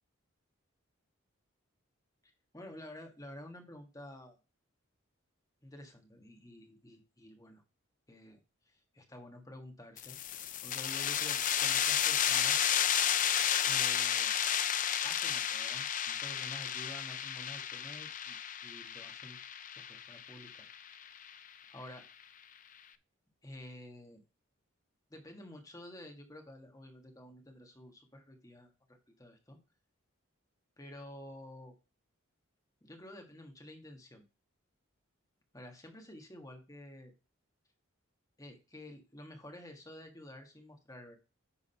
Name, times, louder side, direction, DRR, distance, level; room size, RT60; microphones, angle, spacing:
voice 1, 2.2-4.4 5.6-7.6 8.1-10.2 10.6-12.7 13.6-14.3 15.0-18.4 18.6-19.4 19.9-21.2 21.7-22.0 23.4-24.2 25.1-29.6 30.8-31.7 32.8-34.2 35.5-37.1 38.4-41.2, left 1 dB, 15° left, 3 dB, 1.4 m, -50 dB
sound 1, 10.0-21.3, left 9 dB, 40° left, 0.5 m, -32 dB
9.8 x 3.6 x 5.5 m, 0.31 s
head